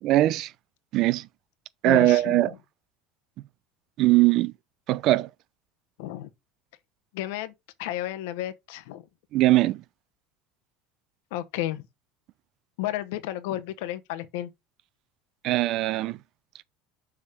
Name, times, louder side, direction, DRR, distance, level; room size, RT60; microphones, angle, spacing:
voice 1, 0.0-0.5 0.9-1.3 1.8-2.5 4.0-4.5 4.9-5.3 9.3-9.8 15.4-16.2, right 16 dB, 55° right, 0.5 m, -21 dB
voice 2, 1.9-2.4 6.0-6.3 7.1-7.5 7.8-9.0 11.3-11.8 12.8-14.5, left 14 dB, 80° left, 1.0 m, -32 dB
6.8 x 3.6 x 4.9 m
supercardioid pair, 105°, 0 cm